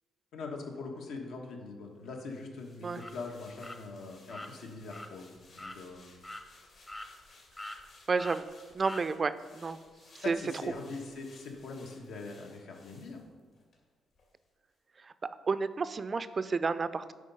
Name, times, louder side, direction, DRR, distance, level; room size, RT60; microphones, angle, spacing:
voice 1, 0.3-5.3 5.5-6.1 10.2-13.2, left 3 dB, 80° left, 1 dB, 1.3 m, -42 dB
sound 1, 2.2-13.8 14.1-14.3, left 3 dB, 65° left, 2.4 m, -60 dB
sound 2, 3.0-3.1 3.6-3.8 4.3-4.5 4.9-5.1 5.6-5.8 6.2-6.4 6.9-7.3 7.6-7.8 8.2-8.4 8.8-9.0, left 1 dB, 20° left, 0.7 m, -43 dB
voice 2, 8.1-8.4 8.7-9.8 10.3-10.4 15.0-15.1 15.5-17.1, right 4 dB, 35° right, 13 dB, 0.4 m, -31 dB
8.4 x 5.0 x 5.5 m, 1.5 s
cardioid pair, 105°, 0 cm